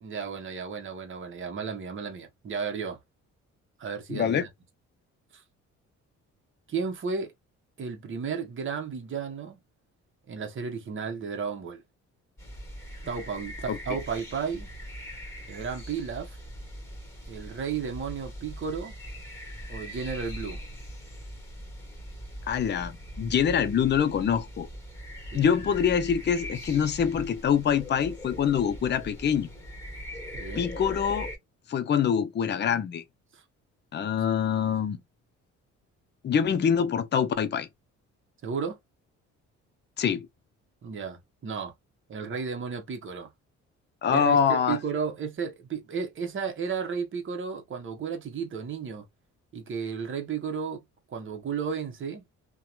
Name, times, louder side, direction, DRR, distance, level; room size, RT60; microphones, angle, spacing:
voice 1, 0.0-3.0 3.8-4.5 5.3-5.4 6.7-7.3 7.8-9.6 10.3-11.8 13.1-14.7 15.5-16.4 17.3-18.9 19.7-20.6 25.3-25.8 30.3-30.6 33.3-33.4 38.4-38.8 40.8-41.7 42.1-43.3 44.1-49.0 49.5-50.8 51.1-52.2, right 6 dB, 40° right, 0.9 m, -33 dB
voice 2, 4.1-4.4 13.7-13.8 22.5-24.7 25.3-29.5 30.6-31.3 31.7-33.0 33.9-35.0 36.2-37.7 40.0-40.3 44.0-44.8, left 8 dB, 35° left, 0.5 m, -25 dB
sound 1, 12.4-31.4, equal, 10° left, 1.4 m, -41 dB
2.8 x 2.2 x 2.3 m
cardioid pair, 90°, 30 cm